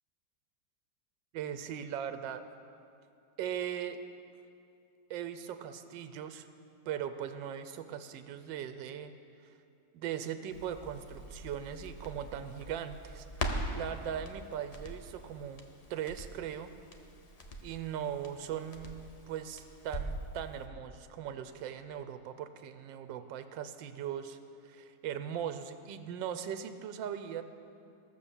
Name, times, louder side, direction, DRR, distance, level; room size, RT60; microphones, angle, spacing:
voice 1, 1.3-2.4 3.4-4.0 5.1-6.5 6.9-9.1 9.9-13.3 13.8-16.7 17.6-24.4 24.6-27.4, right 9 dB, 90° right, 10 dB, 1.3 m, -39 dB
Crackle, 10.5-20.3 20.6-20.7, equal, 40° left, 0.5 m, -42 dB
14.5 x 6.9 x 7.0 m, 2.6 s
omnidirectional pair, 2.0 m